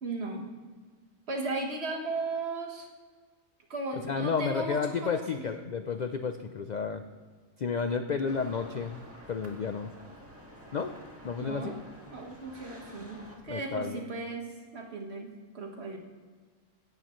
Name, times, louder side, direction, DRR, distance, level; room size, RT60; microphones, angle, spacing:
voice 1, 0.0-0.5 1.3-2.9 3.7-5.5 11.4-11.8 12.1-15.3 15.5-16.0, right 3 dB, 55° right, 1 dB, 1.7 m, -36 dB
voice 2, 4.1-7.0 7.6-9.0 9.3-9.9 10.7-10.9 11.2-11.7 13.5-14.0, left 5 dB, 60° left, 8 dB, 0.4 m, -31 dB
sound 1, 8.3-13.4, equal, 10° right, 1.7 m, -49 dB
16.5 x 10.5 x 3.1 m, 1.5 s
omnidirectional pair, 1.4 m